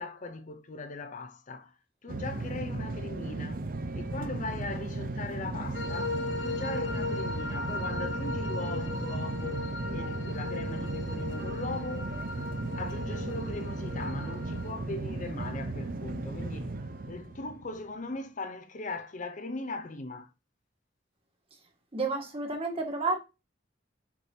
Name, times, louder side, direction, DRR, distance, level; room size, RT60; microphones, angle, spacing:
voice 1, 0.0-1.7 2.0-3.7 4.0-12.2 12.8-16.7 17.1-20.3, left 3 dB, 40° left, 0.6 m, -39 dB
sound 1, 2.1-17.8, right 2 dB, 50° right, 0.7 m, -35 dB
sound 2, 5.7-14.7, left 3 dB, 65° left, 1.0 m, -37 dB
voice 2, 21.9-23.2, right 3 dB, 30° right, 1.7 m, -30 dB
6.1 x 6.0 x 2.8 m
head